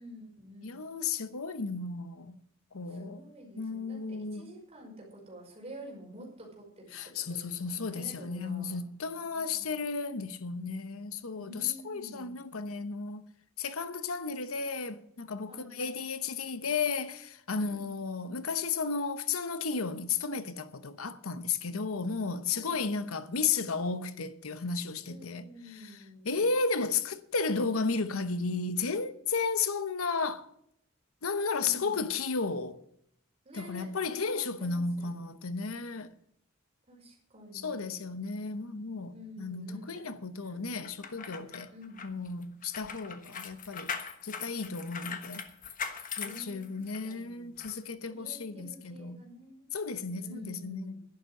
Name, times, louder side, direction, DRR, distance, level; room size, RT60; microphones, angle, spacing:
voice 1, 0.0-0.8 2.9-8.8 9.2-9.7 11.4-12.4 15.5-15.8 17.5-17.9 22.5-22.9 25.0-26.5 31.6-32.0 33.4-35.3 36.9-38.1 39.1-41.0 41.7-42.0 46.2-47.7 48.1-49.7 50.1-51.0, equal, 30° right, 5.3 m, -50 dB
voice 2, 0.6-2.4 2.7-3.2 3.6-4.5 6.9-13.3 13.6-26.0 26.2-30.5 31.2-32.8 33.6-36.1 37.5-41.7 42.0-43.9 44.2-45.4 46.2-49.2 49.7-51.0, left 4 dB, 90° left, 1.0 m, -33 dB
sound 1, 40.8-47.1 47.6-47.7, left 6 dB, 40° left, 1.3 m, -40 dB
11.5 x 10.5 x 6.6 m
head